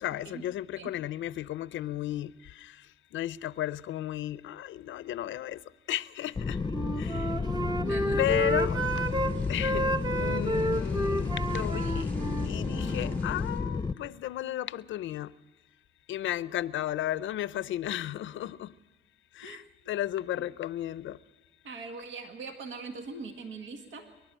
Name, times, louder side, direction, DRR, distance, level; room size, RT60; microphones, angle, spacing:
voice 1, 0.0-5.6 5.9-6.6 7.0-7.4 8.2-9.0 9.5-12.2 12.4-15.3 16.1-18.8 19.3-21.2, left 13 dB, 75° left, 0.6 m, -34 dB
sound 1, 6.4-13.9, left 4 dB, 20° left, 0.7 m, -31 dB
Wind instrument woodwind instrument, 6.6-9.3 9.6-13.2, right 1 dB, 20° right, 0.9 m, -31 dB
voice 2, 7.8-8.4 19.4-19.6 21.6-24.1, right 4 dB, 80° right, 1.9 m, -41 dB
sound 2, 8.2-13.6, right 1 dB, 55° right, 4.4 m, -52 dB
25.5 x 11.5 x 8.9 m
cardioid pair, 90°, 20 cm